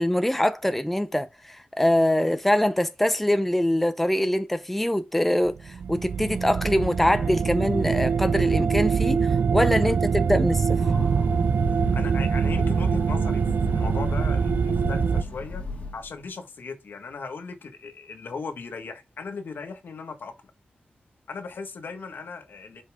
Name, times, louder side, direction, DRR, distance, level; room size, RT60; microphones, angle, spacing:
voice 1, 0.0-10.7, left 1 dB, 5° left, 0.5 m, -24 dB
sound 1, 5.4-15.2, right 6 dB, 60° right, 0.3 m, -24 dB
Train, 10.5-16.2, left 4 dB, 40° left, 1.9 m, -36 dB
voice 2, 11.7-15.6 15.9-20.3 21.3-22.8, left 4 dB, 70° left, 1.5 m, -37 dB
5.5 x 5.3 x 3.5 m
wide cardioid pair, 145°, 4 cm